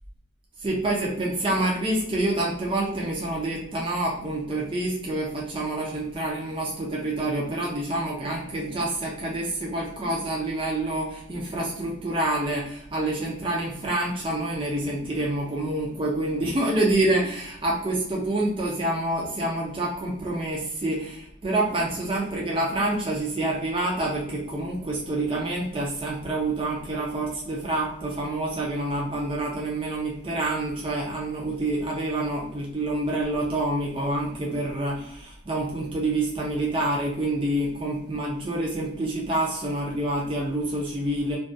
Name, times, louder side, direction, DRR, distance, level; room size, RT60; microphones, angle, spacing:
voice 1, 0.6-41.4, right 1 dB, 25° right, -3 dB, 0.4 m, -27 dB
2.2 x 2.2 x 2.5 m, 0.71 s
head